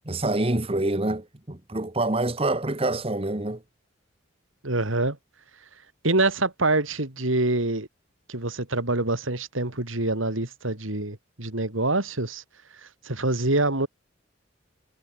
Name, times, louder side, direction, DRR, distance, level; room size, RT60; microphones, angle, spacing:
voice 1, 0.1-3.6, right 2 dB, 30° right, 1.4 m, -26 dB
voice 2, 4.6-5.2 6.0-7.9 8.3-12.4 12.7-13.9, right 2 dB, 90° right, 3.7 m, -25 dB
head